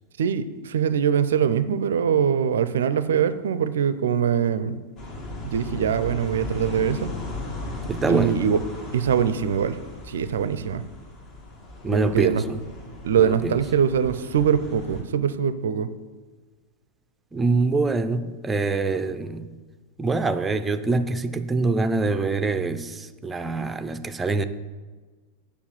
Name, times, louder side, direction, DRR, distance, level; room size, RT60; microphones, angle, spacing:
voice 1, 0.2-4.8 5.4-7.1 8.1-8.6 8.9-10.8 11.9-12.4 13.0-15.9, right 8 dB, 65° right, 0.5 m, -23 dB
sound 1, 5.0-15.0, left 2 dB, 35° left, 2.1 m, -37 dB
voice 2, 7.9-8.4 11.8-12.6 13.2-13.5 17.3-19.5 20.0-24.4, right 3 dB, 15° right, 0.6 m, -24 dB
7.1 x 7.0 x 7.7 m
figure-of-eight pair, 90°, 0 cm